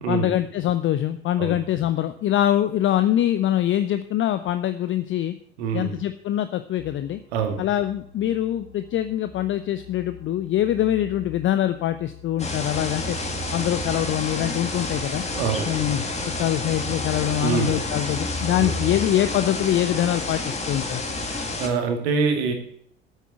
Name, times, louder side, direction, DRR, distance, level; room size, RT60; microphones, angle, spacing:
voice 1, 0.1-5.4 5.7-7.2 7.6-13.2 13.5-15.2 15.6-21.0, left 12 dB, 35° left, 11 dB, 0.7 m, -24 dB
voice 2, 5.6-5.9 7.3-7.6 15.3-15.6 17.4-17.7 18.6-18.7 21.3-22.5, right 5 dB, 65° right, 5 dB, 2.1 m, -25 dB
sound 1, 6.8-13.7, left 8 dB, 30° right, 2.7 m, -47 dB
sound 2, 12.4-21.7, left 2 dB, 20° left, 2.1 m, -29 dB
9.0 x 8.3 x 8.2 m, 0.65 s
figure-of-eight pair, 65°, 34 cm